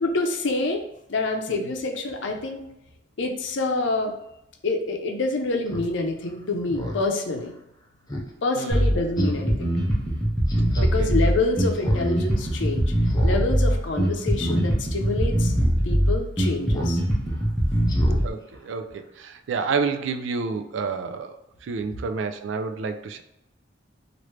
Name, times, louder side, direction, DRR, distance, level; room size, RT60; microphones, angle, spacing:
voice 1, 0.0-0.8 1.1-2.6 3.2-4.1 4.6-7.5 8.4-9.9 10.8-12.9 13.2-15.5 15.8-17.0, left 2 dB, 85° left, 3 dB, 0.6 m, -27 dB
Speech synthesizer, 5.7-5.9 6.3-6.4 6.7-7.0 7.4-7.5 8.1-8.3 8.7-8.8 9.2-9.5 10.5-10.8 11.7-12.1 12.4-12.5 13.1-13.4 13.7-13.9 14.4-14.6 15.1-15.2 15.5-15.7 16.7-17.0 17.3-17.4 17.9-18.2 18.5-18.6, left 1 dB, 20° left, 0.5 m, -33 dB
voice 2, 8.6-8.9 10.8-11.1 18.2-21.4 21.6-23.2, right 5 dB, 90° right, 7 dB, 0.4 m, -29 dB
Bass guitar, 8.7-18.3, equal, 5° left, 0.9 m, -22 dB
3.0 x 2.5 x 3.2 m, 0.84 s
head